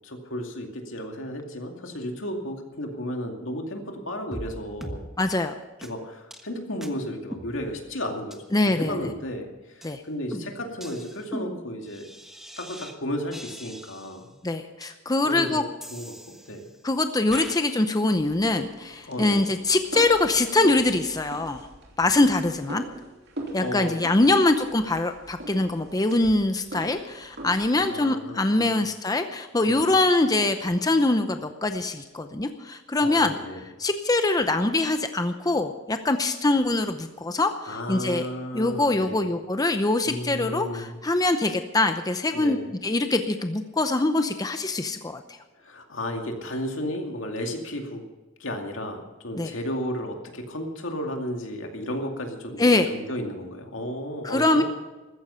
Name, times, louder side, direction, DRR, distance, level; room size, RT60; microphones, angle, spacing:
voice 1, 0.0-5.0 5.8-12.1 12.6-14.3 15.2-16.7 19.1-19.4 23.6-24.3 27.7-28.8 29.6-30.0 33.0-33.6 37.6-39.3 40.0-41.0 42.3-42.7 45.6-48.0 48.4-54.6, equal, 75° left, 3 dB, 2.4 m, -33 dB
sound 1, 4.3-4.5 4.8-5.0 5.3-5.4 5.8-5.9 6.3-6.5 6.8-6.9 7.3-7.9 8.3-8.4 8.8-9.4 9.8-10.0 10.3-12.9 13.3-14.2 14.8-14.9 15.8-16.8 17.3-17.6, equal, ahead, 1.3 m, -40 dB
voice 2, 5.2-5.5 8.5-9.0 9.8-10.0 14.4-15.6 16.8-21.7 22.0-22.8 23.5-33.3 33.8-38.3 38.5-45.4 49.3-49.5 52.6-52.9 54.2-54.6, left 2 dB, 20° left, 8 dB, 0.7 m, -23 dB
sound 2, 18.1-27.9, right 2 dB, 60° right, 3.0 m, -41 dB
15.0 x 14.0 x 5.7 m, 1.2 s
head